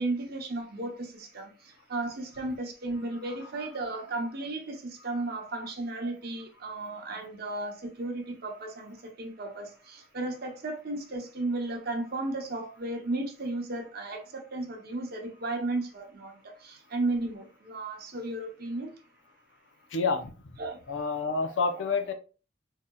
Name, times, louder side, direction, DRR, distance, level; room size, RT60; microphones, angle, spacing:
voice 1, 0.0-19.0 20.6-20.8 21.7-22.1, right 2 dB, 55° right, 0.8 m, -34 dB
voice 2, 19.9-20.3 20.9-22.1, left 4 dB, 75° left, 0.6 m, -28 dB
4.0 x 2.8 x 2.3 m
head